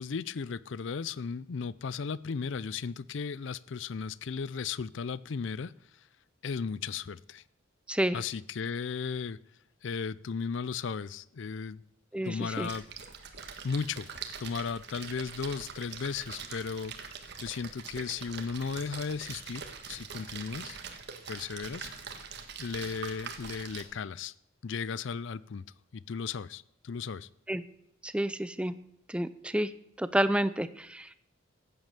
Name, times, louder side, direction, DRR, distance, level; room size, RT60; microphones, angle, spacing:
voice 1, 0.0-5.7 6.4-7.4 8.1-9.4 9.8-11.8 12.3-12.8 13.6-14.1 14.4-17.1 17.4-20.8 21.3-21.9 22.6-24.3 24.6-25.6 25.9-27.3, left 5 dB, 60° left, 0.5 m, -35 dB
voice 2, 12.1-12.7 27.5-27.6 28.0-28.7 29.1-29.7 30.0-31.2, right 1 dB, 5° right, 0.5 m, -29 dB
Splash splatter, 12.5-23.8, right 6 dB, 55° right, 1.6 m, -43 dB
14.5 x 9.2 x 6.7 m
head